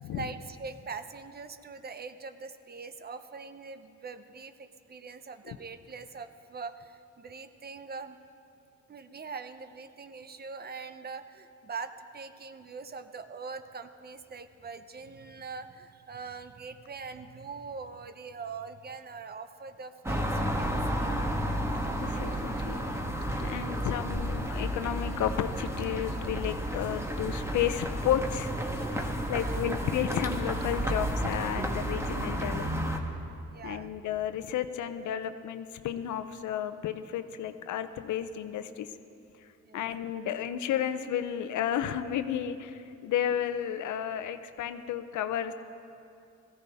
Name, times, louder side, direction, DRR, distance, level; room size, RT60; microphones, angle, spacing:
voice 1, 0.1-8.2 8.9-21.1 29.3-29.7 33.5-33.9 39.6-39.9, right 4 dB, 30° right, 11 dB, 0.7 m, -42 dB
sound 1, 20.0-33.0, equal, 10° right, 1.3 m, -32 dB
voice 2, 22.0-22.8 23.4-28.5 28.9-32.9 33.6-38.9 39.4-39.5 39.7-45.5, left 10 dB, 75° left, 11 dB, 0.7 m, -32 dB
17.5 x 15.0 x 3.5 m, 2.6 s
cardioid pair, 90°, 30 cm